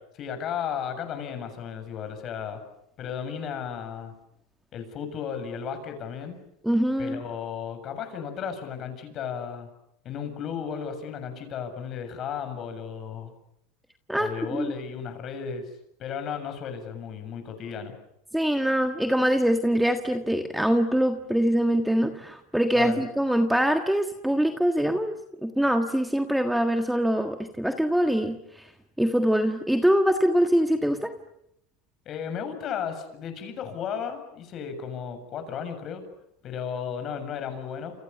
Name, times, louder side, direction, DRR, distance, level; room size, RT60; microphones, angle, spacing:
voice 1, 0.1-2.6 3.0-4.1 4.7-6.4 7.0-9.7 10.0-13.3 14.1-15.6 16.0-18.0 22.7-23.0 32.1-36.0 36.4-37.9, left 7 dB, 35° left, 8 dB, 7.3 m, -34 dB
voice 2, 6.6-7.2 14.1-14.3 14.6-14.7 18.3-28.7 29.0-31.1, equal, ahead, 6 dB, 1.6 m, -24 dB
29.5 x 28.5 x 7.1 m, 0.78 s
supercardioid pair, 145°, 0 cm